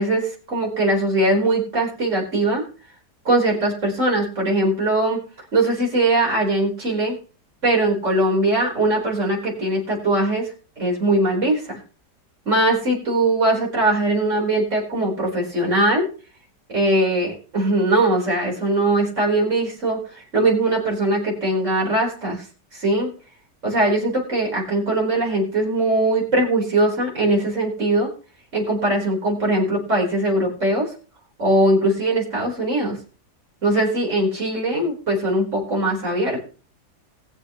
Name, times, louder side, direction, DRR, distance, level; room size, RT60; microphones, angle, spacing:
voice 1, 0.0-2.6 3.2-5.2 5.5-7.2 7.6-10.5 10.8-11.8 12.5-16.1 16.7-20.0 20.3-22.4 22.7-23.1 23.6-28.1 28.5-30.9 31.4-33.0 33.6-36.4, right 1 dB, 45° right, -2 dB, 4.6 m, -21 dB
21.0 x 7.1 x 3.1 m, 0.38 s
omnidirectional pair, 1.8 m